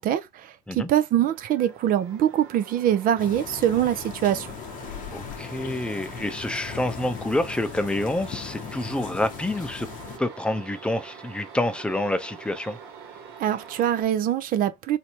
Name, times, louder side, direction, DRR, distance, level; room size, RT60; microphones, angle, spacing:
voice 1, 0.0-4.5 13.4-15.0, right 11 dB, 60° right, 0.6 m, -23 dB
sound 1, 1.2-14.0, right 6 dB, 75° right, 1.4 m, -45 dB
sound 2, 3.2-10.2, left 8 dB, 55° left, 0.8 m, -38 dB
voice 2, 5.1-9.9 10.2-12.8, left 1 dB, 5° left, 0.7 m, -28 dB
3.2 x 2.8 x 2.9 m
supercardioid pair, 85°, 17 cm